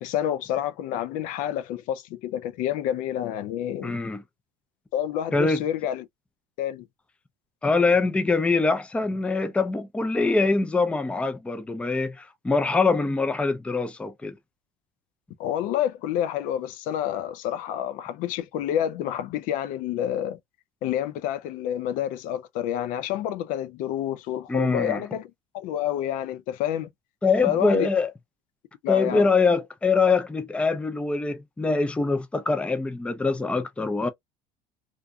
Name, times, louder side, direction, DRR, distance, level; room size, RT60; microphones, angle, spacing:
voice 1, 0.0-4.0 4.9-6.1 6.6-6.9 15.4-20.4 20.8-25.3 25.5-26.9 27.4-27.9 28.8-29.3, left 11 dB, 65° left, 0.5 m, -28 dB
voice 2, 3.8-4.2 5.3-5.6 7.6-14.3 24.5-25.0 27.2-28.1 28.9-34.1, left 4 dB, 10° left, 0.4 m, -24 dB
2.5 x 2.1 x 2.6 m
supercardioid pair, 110°, 14 cm